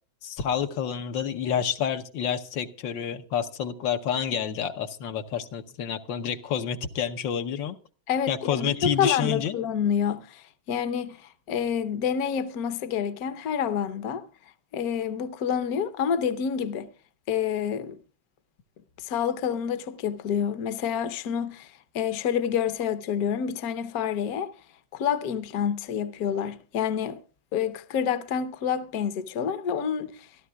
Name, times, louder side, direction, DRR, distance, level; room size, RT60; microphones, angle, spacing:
voice 1, 0.2-7.8 8.3-9.6, left 8 dB, 75° left, 1.6 m, -29 dB
voice 2, 8.1-14.3 14.7-16.9 17.3-18.0 19.0-24.5 24.9-27.2 27.5-30.3, left 8 dB, 55° left, 1.2 m, -28 dB
25.5 x 13.0 x 2.3 m
omnidirectional pair, 2.1 m